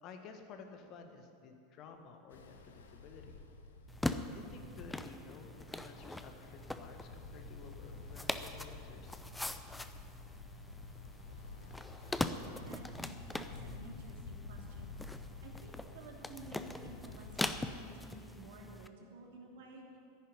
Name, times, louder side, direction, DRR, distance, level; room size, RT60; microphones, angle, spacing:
voice 1, 0.0-3.4 4.3-9.2, left 5 dB, 40° left, 5 dB, 1.6 m, -53 dB
Ocean, 2.3-17.7, left 3 dB, 65° left, 1.2 m, -51 dB
sound 1, 3.9-18.9, left 1 dB, 5° left, 0.7 m, -42 dB
voice 2, 12.3-20.0, right 2 dB, 55° right, 0 dB, 2.8 m, -53 dB
10.5 x 10.5 x 9.8 m, 2.5 s
figure-of-eight pair, 85°, 0 cm